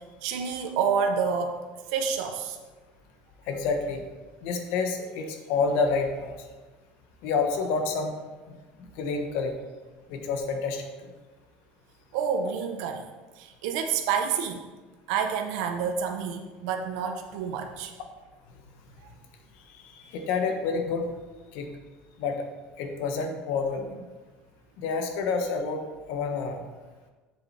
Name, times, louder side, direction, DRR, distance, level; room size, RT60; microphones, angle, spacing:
voice 1, 0.2-1.6 1.9-2.6 12.1-13.0 13.4-14.6 15.1-17.9, right 6 dB, 85° right, 4 dB, 0.8 m, -28 dB
voice 2, 3.5-4.0 4.4-6.3 7.2-8.1 9.0-9.5 10.1-11.1 19.7-21.1 21.5-21.7 22.2-22.4 22.8-24.0 24.8-25.8 26.1-26.6, left 4 dB, 65° left, 5 dB, 1.2 m, -28 dB
7.6 x 7.2 x 4.3 m, 1.3 s
cardioid pair, 165°, 4 cm